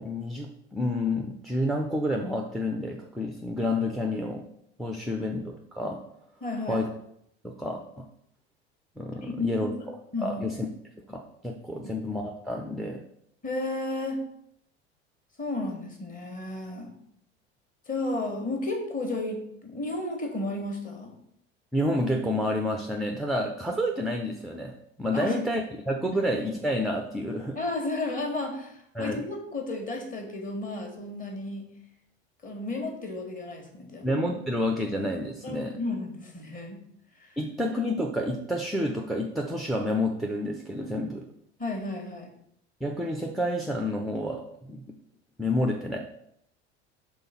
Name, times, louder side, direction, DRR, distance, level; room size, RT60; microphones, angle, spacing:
voice 1, 0.0-4.5 4.8-6.0 6.7-6.9 7.4-8.1 9.0-9.7 10.2-10.7 11.1-13.0 21.7-27.6 28.9-29.2 34.0-35.8 37.4-41.3 42.8-44.8 45.4-46.0, left 1 dB, ahead, 3 dB, 0.5 m, -29 dB
voice 2, 6.4-6.8 9.2-9.9 10.1-10.5 11.8-12.0 13.4-14.2 15.4-17.0 17.9-21.1 25.1-25.4 26.1-26.2 27.5-31.7 32.4-34.0 35.4-36.8 37.2-37.3 41.6-42.3, left 2 dB, 25° left, 3 dB, 1.6 m, -33 dB
5.4 x 3.6 x 5.7 m, 0.74 s
figure-of-eight pair, 70°, 34 cm